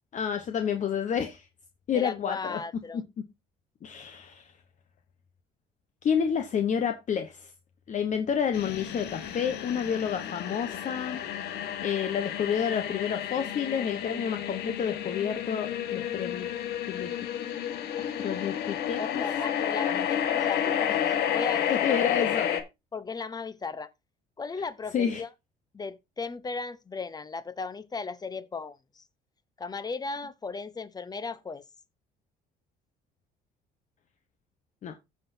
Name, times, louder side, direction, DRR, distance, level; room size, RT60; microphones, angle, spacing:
voice 1, 0.1-1.5 1.9-2.6 2.9-3.0 3.8-4.5 6.0-7.5 7.9-16.5 16.9-17.1 18.0-19.2 19.8-20.1 20.9-21.0 21.7-22.5 24.9-25.2 34.8-34.9, left 7 dB, 45° left, 1.0 m, -30 dB
voice 2, 1.9-3.0 19.0-21.0 21.3-22.0 22.9-23.9 24.4-25.3 25.7-29.1 29.6-31.6, left 4 dB, 25° left, 0.9 m, -36 dB
sound 1, 8.5-22.6, left 9 dB, 75° left, 1.5 m, -31 dB
14.5 x 6.0 x 2.7 m
cardioid pair, 110°, 17 cm